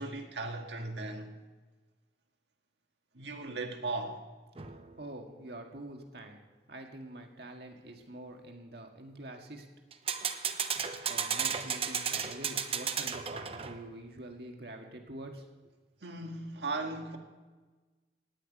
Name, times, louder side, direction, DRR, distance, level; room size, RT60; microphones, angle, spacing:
voice 1, 0.0-1.4 3.1-4.2 16.0-17.2, right 2 dB, 75° right, 1.8 m, -37 dB
sound 1, 4.6-5.1 9.9-13.9, right 7 dB, 30° right, 0.8 m, -34 dB
voice 2, 5.0-6.4 6.7-9.7 11.1-15.5, right 1 dB, 60° right, 1.9 m, -46 dB
16.5 x 6.0 x 9.7 m
head